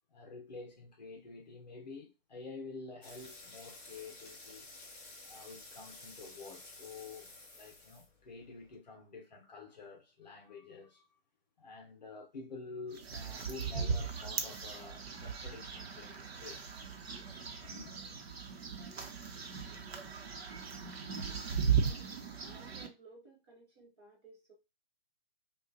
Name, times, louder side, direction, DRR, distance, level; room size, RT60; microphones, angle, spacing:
voice 1, 0.1-4.7 5.3-11.1 11.6-16.8 17.6-17.9, left 4 dB, 45° left, 0.7 m, -49 dB
sound 1, 3.0-8.8, left 2 dB, 15° left, 0.6 m, -53 dB
sound 2, 12.9-22.9, right 6 dB, 85° right, 1.0 m, -37 dB
voice 2, 21.7-22.1 22.4-24.5, right 3 dB, 25° right, 1.3 m, -58 dB
5.4 x 2.4 x 2.5 m
hypercardioid pair, 180°, 30 cm